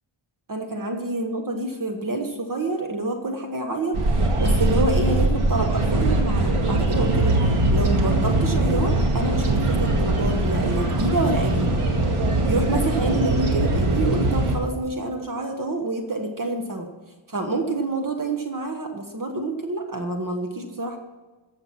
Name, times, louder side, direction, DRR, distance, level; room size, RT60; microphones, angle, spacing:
voice 1, 0.5-7.4 7.7-11.8 12.4-16.9 17.3-21.0, right 2 dB, 40° right, 4 dB, 1.3 m, -27 dB
sound 1, 3.9-14.6, right 2 dB, 80° right, 2.1 m, -21 dB
14.0 x 8.0 x 5.9 m, 1.2 s
wide cardioid pair, 130°, 50 cm